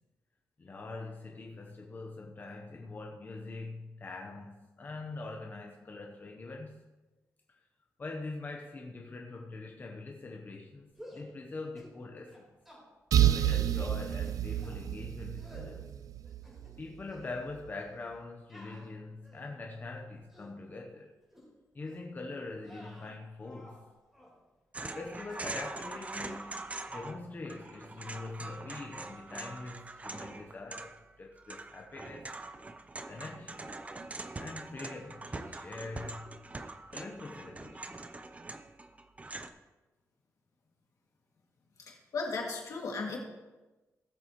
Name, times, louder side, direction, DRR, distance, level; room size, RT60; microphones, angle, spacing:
voice 1, 0.6-6.8 8.0-12.5 13.2-15.9 16.8-21.1 21.7-23.8 24.7-26.6 26.9-32.3 33.1-33.7 34.4-36.5 36.9-38.2, left 3 dB, 30° left, 0.9 m, -43 dB
sound 1, 10.9-11.3 11.7-12.0 12.3-12.8 13.4-13.7 14.2-14.8 15.4-15.7 16.2-16.8 17.1-17.3 18.5-19.6 20.1-20.6 21.3-21.5 21.9-22.1 22.6-23.8 24.1-24.4 25.3-25.6 25.8-26.6 26.8-27.2, equal, 5° right, 3.9 m, -53 dB
sound 2, 13.1-16.8, right 11 dB, 75° right, 0.4 m, -29 dB
sound 3, 24.7-27.2 27.4-39.5, right 3 dB, 25° right, 0.6 m, -43 dB
voice 2, 41.8-43.2, left 4 dB, 70° left, 2.2 m, -36 dB
17.0 x 7.7 x 3.0 m
wide cardioid pair, 125°, 6 cm